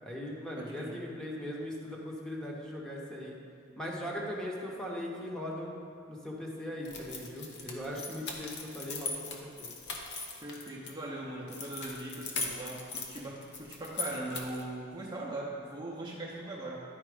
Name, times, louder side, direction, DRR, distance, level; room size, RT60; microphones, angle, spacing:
voice 1, 0.0-3.4 3.8-5.8 6.1-9.7, left 1 dB, 5° left, -3 dB, 0.9 m, -39 dB
voice 2, 0.6-1.0 10.4-16.8, right 2 dB, 20° right, -4 dB, 0.7 m, -40 dB
sound 1, 6.8-10.9 11.5-14.7, left 4 dB, 60° left, 0.9 m, -40 dB
10.0 x 4.3 x 5.0 m, 2.5 s
head